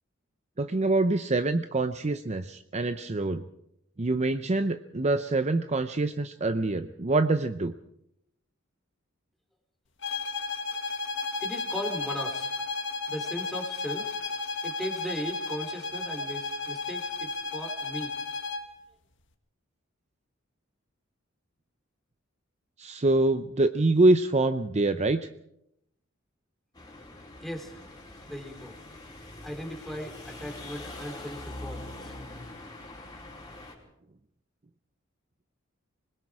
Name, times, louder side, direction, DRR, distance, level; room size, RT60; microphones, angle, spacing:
voice 1, 0.6-3.4 4.0-7.7 22.8-25.3, right 2 dB, 35° right, 10 dB, 0.7 m, -25 dB
sound 1, 10.0-18.7, left 3 dB, 65° left, 1.8 m, -33 dB
voice 2, 11.4-12.5 13.1-14.1 14.6-18.2 27.4-27.7 28.3-28.7 29.4-32.1, equal, ahead, 2 dB, 3.3 m, -37 dB
sound 2, 26.7-33.7, left 2 dB, 20° left, 4.9 m, -43 dB
25.5 x 21.0 x 4.9 m, 0.78 s
head